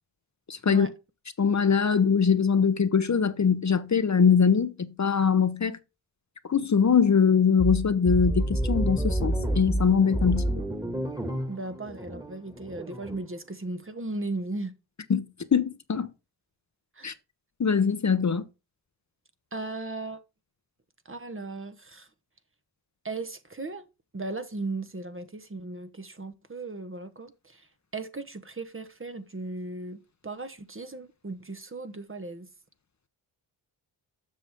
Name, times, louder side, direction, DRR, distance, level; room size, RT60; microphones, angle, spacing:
voice 1, 0.5-0.9 1.4-5.8 6.4-10.5 15.1-16.1 17.0-17.1 17.6-18.4, left 6 dB, 35° left, 0.9 m, -22 dB
sound 1, 7.6-13.2, right 1 dB, 10° right, 1.7 m, -29 dB
voice 2, 11.5-14.7 16.9-17.1 19.5-20.2 21.0-22.1 23.0-23.9 24.1-27.7 27.9-32.5, right 2 dB, 25° right, 1.0 m, -37 dB
7.6 x 6.2 x 3.5 m
supercardioid pair, 45°, 47 cm